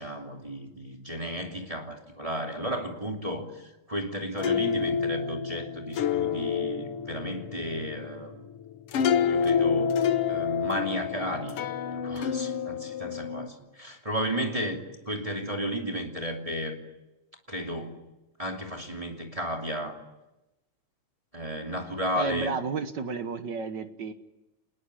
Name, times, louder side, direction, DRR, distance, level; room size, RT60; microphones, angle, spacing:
voice 1, 0.0-8.4 9.2-11.6 11.9-16.8 17.5-18.0 18.4-20.0 21.3-22.5, equal, 10° right, 1 dB, 2.6 m, -33 dB
sound 1, 4.4-13.5, left 7 dB, 60° left, 1.8 m, -28 dB
voice 2, 22.2-24.1, right 4 dB, 55° right, 9 dB, 1.2 m, -32 dB
27.5 x 20.5 x 9.9 m, 1.0 s
omnidirectional pair, 3.4 m